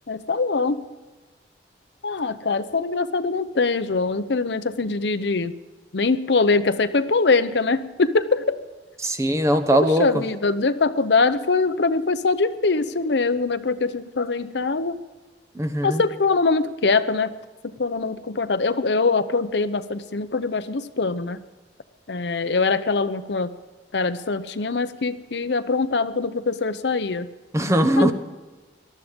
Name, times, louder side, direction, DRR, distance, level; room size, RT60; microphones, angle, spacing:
voice 1, 0.1-0.8 2.0-5.5 5.9-8.6 9.7-15.0 15.8-17.3 17.6-21.4 22.1-23.5 23.9-27.3 28.0-28.1, left 4 dB, 75° left, 11 dB, 0.8 m, -23 dB
voice 2, 9.0-10.1 15.5-16.0 27.5-28.1, equal, 15° right, 8 dB, 1.0 m, -20 dB
19.0 x 13.0 x 5.3 m, 1.2 s
head